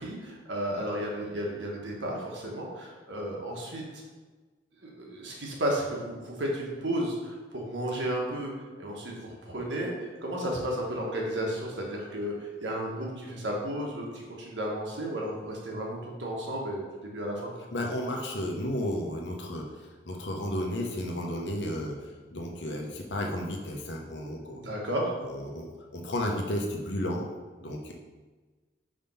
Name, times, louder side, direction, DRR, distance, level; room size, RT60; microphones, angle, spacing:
voice 1, 0.0-3.8 4.8-8.5 8.8-17.5 24.5-25.2, right 1 dB, 90° right, -2 dB, 1.4 m, -33 dB
voice 2, 17.7-24.6 25.2-27.3 27.6-27.9, left 1 dB, 80° left, 1 dB, 1.0 m, -33 dB
5.0 x 3.6 x 5.7 m, 1.3 s
head